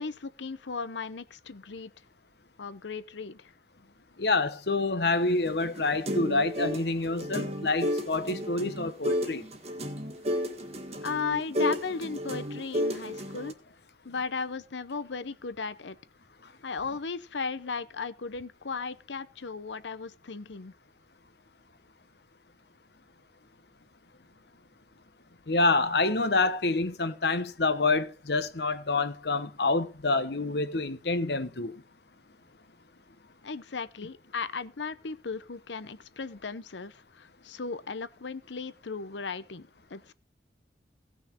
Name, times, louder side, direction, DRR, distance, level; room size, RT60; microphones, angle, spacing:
voice 1, 0.0-1.9 2.6-3.5 11.0-13.5 14.0-16.0 16.6-20.7 33.4-40.1, left 4 dB, 90° left, 0.8 m, -36 dB
voice 2, 4.2-9.5 25.5-31.7, left 3 dB, 70° left, 1.0 m, -27 dB
sound 1, 5.3-13.5, equal, 35° right, 1.6 m, -32 dB
16.5 x 6.3 x 4.3 m
head